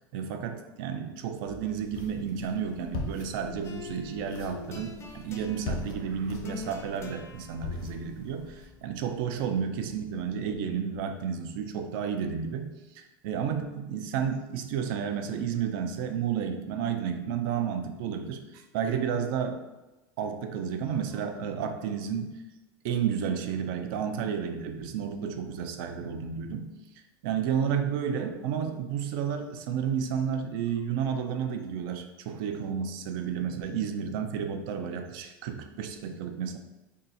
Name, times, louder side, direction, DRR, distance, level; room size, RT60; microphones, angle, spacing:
voice 1, 0.1-19.6 20.2-22.4 22.8-26.6 27.2-36.6, right 7 dB, 65° right, 6 dB, 0.4 m, -31 dB
sound 1, 1.7-8.7, left 2 dB, 65° left, 0.6 m, -41 dB
sound 2, 3.6-10.4, left 4 dB, 20° left, 0.4 m, -46 dB
2.8 x 2.3 x 3.9 m, 1.0 s
supercardioid pair, 130°, 12 cm